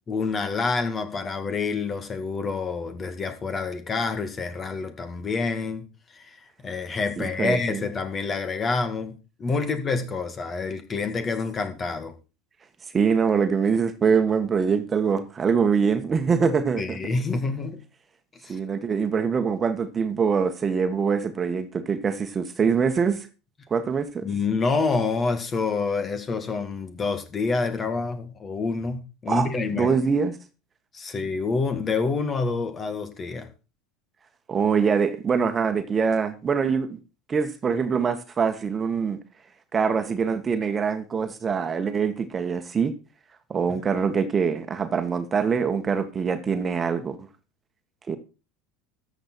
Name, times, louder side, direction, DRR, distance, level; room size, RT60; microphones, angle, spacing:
voice 1, 0.1-5.8 6.1-6.4 6.6-9.1 9.4-12.1 16.8-17.8 18.4-18.6 24.2-30.0 30.9-33.5, left 4 dB, 30° left, 2.1 m, -27 dB
voice 2, 7.2-7.8 12.9-17.0 18.5-23.3 23.7-24.2 29.3-29.5 29.7-30.3 34.5-36.9 37.3-39.2 39.7-42.9 43.5-47.3 48.1-48.2, right 6 dB, 25° right, 1.7 m, -24 dB
13.5 x 8.0 x 4.6 m
hypercardioid pair, 75°, 0 cm